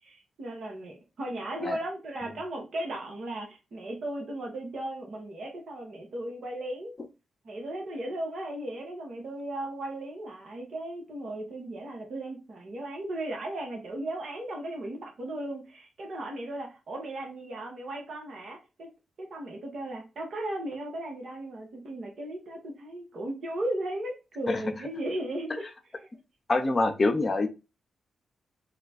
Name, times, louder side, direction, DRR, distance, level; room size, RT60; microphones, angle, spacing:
voice 1, 0.0-6.9 7.4-18.9 19.2-25.7 26.0-26.1, right 1 dB, 65° right, 1 dB, 1.2 m, -36 dB
voice 2, 26.5-27.5, left 2 dB, 40° left, 6 dB, 0.7 m, -25 dB
3.0 x 2.2 x 4.1 m, 0.29 s
supercardioid pair, 45°, 0 cm